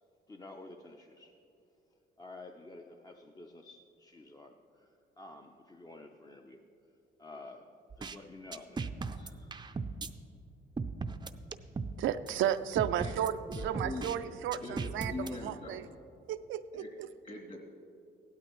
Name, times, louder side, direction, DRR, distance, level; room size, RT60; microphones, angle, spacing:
voice 1, 0.3-1.4 2.2-6.6 7.2-7.7 8.0-9.5, left 2 dB, 20° left, 3 dB, 0.6 m, -51 dB
sound 1, 7.9-8.2 8.5-10.1 10.8-12.0 12.3-12.4 12.8-14.2 14.5-15.3, right 4 dB, 20° right, 0.5 m, -37 dB
voice 2, 12.0-15.9 16.3-17.1, right 10 dB, 75° right, 10 dB, 0.5 m, -33 dB
voice 3, 13.5-14.1 14.6-15.8 16.7-16.9 17.2-17.6, left 2 dB, 45° left, -2 dB, 2.9 m, -42 dB
16.5 x 12.0 x 3.1 m, 2.8 s
cardioid pair, 90°, 20 cm